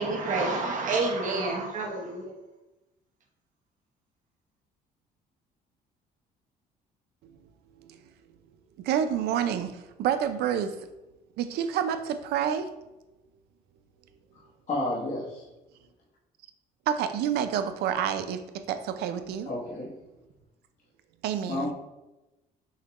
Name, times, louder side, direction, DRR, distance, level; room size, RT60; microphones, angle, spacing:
voice 1, 0.0-2.3, right 3 dB, 50° right, 1 dB, 0.9 m, -28 dB
voice 2, 8.8-10.8 11.4-12.7 16.9-19.5 21.2-21.7, right 9 dB, 75° right, 10 dB, 0.4 m, -28 dB
voice 3, 14.7-15.5 19.4-19.9 21.4-21.7, left 2 dB, 45° left, -6 dB, 0.9 m, -31 dB
6.4 x 2.1 x 3.0 m, 1.0 s
cardioid pair, 110°, 17 cm